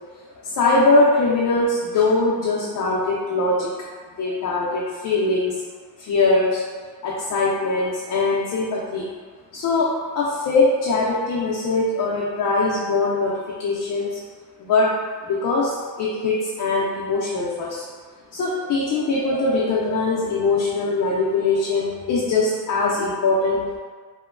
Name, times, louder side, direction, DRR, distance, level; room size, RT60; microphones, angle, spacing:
voice 1, 0.4-3.7 4.2-5.5 6.0-6.6 7.0-9.1 9.5-9.9 10.1-13.3 13.6-14.2 14.6-14.9 15.2-17.8 18.3-23.8, left 3 dB, 45° left, -5 dB, 0.5 m, -21 dB
2.9 x 2.1 x 2.4 m, 1.5 s
cardioid pair, 110°, 43 cm